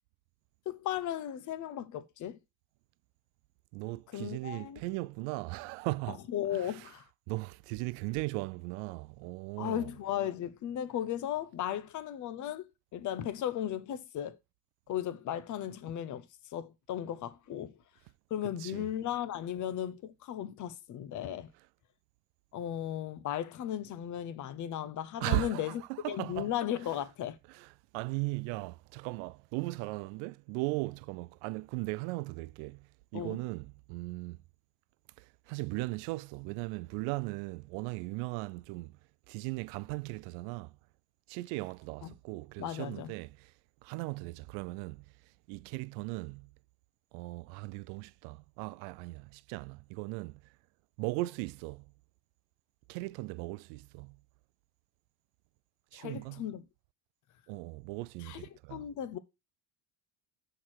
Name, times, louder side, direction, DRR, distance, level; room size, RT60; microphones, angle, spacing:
voice 1, 0.7-2.4 4.1-4.8 6.1-7.0 9.6-14.4 14.9-16.3 16.5-17.8 18.3-21.5 22.5-27.4 33.1-33.4 42.0-42.1 42.6-43.1 55.9-56.6 58.2-59.2, left 11 dB, 40° left, 0.7 m, -36 dB
voice 2, 3.7-6.2 6.5-6.9 7.3-9.9 18.4-18.9 25.2-26.5 27.5-32.9 33.1-34.4 35.2-39.0 39.3-40.8 41.3-43.5 43.8-45.0 45.5-46.5 47.1-50.4 51.0-51.8 52.9-54.2 55.9-56.4 57.5-58.8, right 23 dB, 90° right, 0.5 m, -38 dB
5.8 x 4.6 x 6.2 m
cardioid pair, 140°, 45 cm